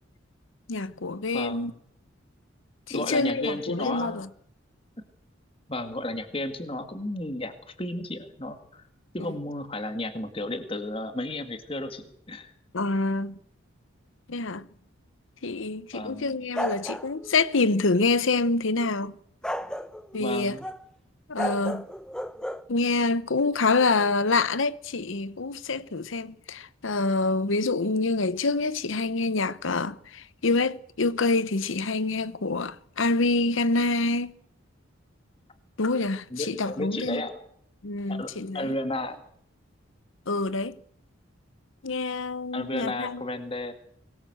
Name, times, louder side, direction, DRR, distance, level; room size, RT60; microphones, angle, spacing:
voice 1, 0.7-1.7 2.9-4.3 12.7-13.4 14.3-14.7 15.4-19.1 20.1-20.6 21.3-21.8 22.7-34.3 35.8-37.2 37.8-38.7 40.3-40.8 41.8-43.2, left 3 dB, 70° left, 0.9 m, -26 dB
voice 2, 1.3-1.8 2.9-4.3 5.7-8.9 9.1-12.5 15.9-16.3 20.2-20.6 36.3-37.5 38.1-39.2 42.5-43.7, left 1 dB, 25° left, 1.9 m, -33 dB
sound 1, 16.6-17.7 19.4-20.8 21.4-22.6, equal, 5° left, 0.9 m, -33 dB
23.5 x 19.5 x 7.9 m
head